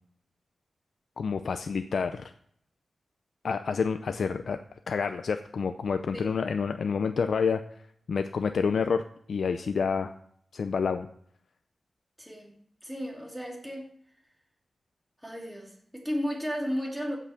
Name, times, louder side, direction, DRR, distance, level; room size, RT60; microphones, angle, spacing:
voice 1, 1.2-2.3 3.4-4.6 4.9-7.6 8.1-10.1 10.5-11.1, left 5 dB, 70° left, 8 dB, 0.5 m, -28 dB
voice 2, 12.2-12.6 12.8-13.9 15.2-17.2, equal, ahead, -1 dB, 2.6 m, -34 dB
15.0 x 6.1 x 5.7 m, 0.68 s
wide cardioid pair, 155°, 0 cm